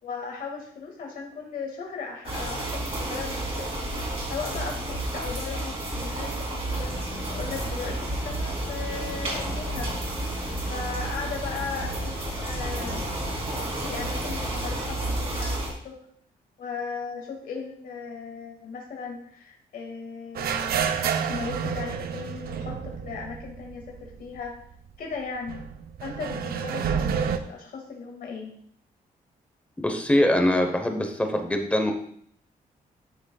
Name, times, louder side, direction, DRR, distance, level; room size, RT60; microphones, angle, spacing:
voice 1, 0.0-3.7 4.3-10.0 10.7-13.0 13.8-15.6 15.8-16.0 16.6-24.5 25.0-25.6 26.0-28.5, left 5 dB, 70° left, 0 dB, 2.0 m, -37 dB
sound 1, 2.2-15.7, right 1 dB, 40° right, 2.9 m, -31 dB
sound 2, 6.7-14.9, left 2 dB, 30° left, 1.5 m, -42 dB
sound 3, 20.3-24.1 24.4-24.5 25.5-27.4, right 7 dB, 85° right, 0.6 m, -29 dB
voice 2, 29.8-31.9, left 1 dB, 10° left, 4 dB, 1.0 m, -23 dB
12.0 x 6.5 x 2.3 m, 0.64 s
wide cardioid pair, 160°, 15 cm